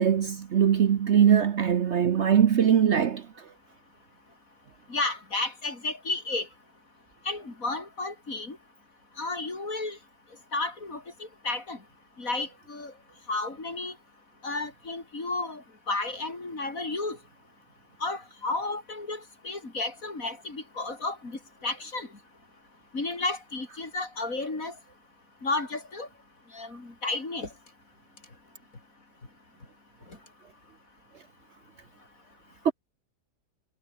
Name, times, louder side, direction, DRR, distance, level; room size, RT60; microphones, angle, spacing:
voice 1, 0.0-3.2 32.6-32.7, right 8 dB, 50° right, 1.0 m, -21 dB
voice 2, 4.9-6.5 7.2-8.6 9.2-10.0 10.5-11.8 12.2-12.9 13.3-13.9 14.4-17.2 18.0-22.1 22.9-24.7 25.4-26.1 26.5-27.5, left 3 dB, 55° left, 4.7 m, -32 dB
omnidirectional pair, 1.7 m